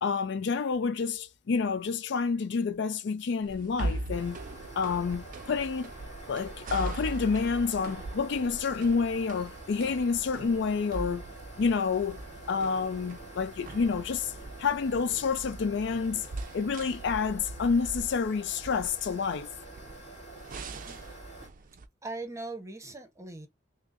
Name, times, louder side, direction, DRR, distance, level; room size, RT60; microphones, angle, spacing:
voice 1, 0.0-4.4 4.8-5.9 6.3-11.2 11.6-12.2 12.5-14.3 14.6-16.3 16.5-19.5, left 5 dB, 65° left, 0.4 m, -29 dB
sound 1, 3.4-21.9, right 2 dB, 45° right, 0.4 m, -41 dB
sound 2, 4.1-21.5, right 1 dB, 35° left, 2.1 m, -46 dB
voice 2, 20.7-21.0 22.0-23.5, right 2 dB, 15° right, 0.7 m, -40 dB
6.0 x 2.0 x 2.4 m
head